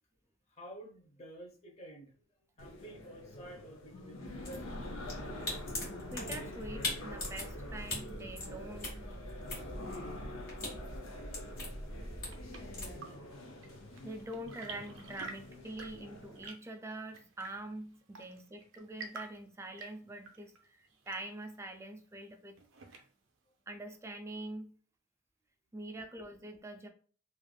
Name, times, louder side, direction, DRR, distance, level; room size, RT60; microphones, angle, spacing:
voice 1, 0.5-4.9 18.2-18.4, right 1 dB, 35° left, 2 dB, 0.8 m, -51 dB
sound 1, 2.6-16.5, left 1 dB, 80° left, 0.6 m, -46 dB
sound 2, 4.2-13.0, left 1 dB, 50° left, 1.4 m, -42 dB
voice 2, 6.1-9.0 14.0-22.6 22.9-23.0 23.7-24.8 25.7-26.9, right 1 dB, 15° right, 5 dB, 0.3 m, -45 dB
Chirp tweet / Engine / Tap, 11.9-23.4, right 4 dB, 80° right, 0.5 m, -52 dB
3.2 x 2.4 x 2.2 m, 0.42 s
head